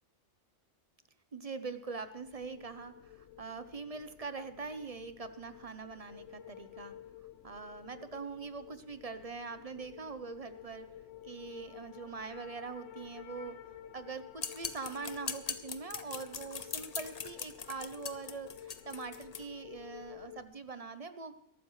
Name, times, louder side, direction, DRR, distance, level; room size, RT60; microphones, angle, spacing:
voice 1, 1.3-6.9 7.4-10.9 11.2-13.6 13.9-21.3, right 4 dB, 35° right, 10 dB, 0.7 m, -43 dB
sound 1, 1.8-20.5, left 10 dB, 75° left, 1.0 m, -52 dB
sound 2, 14.4-19.4, left 6 dB, 40° left, 0.7 m, -40 dB
22.0 x 12.5 x 3.2 m, 0.76 s
omnidirectional pair, 1.3 m